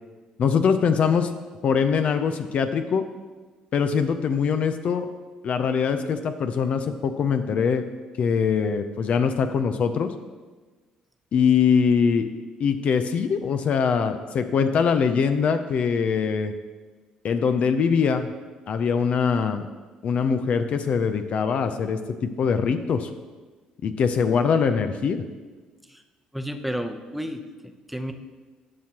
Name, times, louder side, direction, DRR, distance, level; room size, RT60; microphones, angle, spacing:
voice 1, 0.4-1.3 1.6-3.0 3.7-5.1 5.4-7.8 8.2-10.1 11.3-12.3 12.6-16.5 17.2-18.3 18.7-19.6 20.0-23.1 23.8-25.2, left 6 dB, 55° left, 9 dB, 0.5 m, -22 dB
voice 2, 26.3-28.1, equal, 5° right, 6 dB, 0.7 m, -32 dB
12.0 x 5.9 x 2.9 m, 1.3 s
supercardioid pair, 60°, 3 cm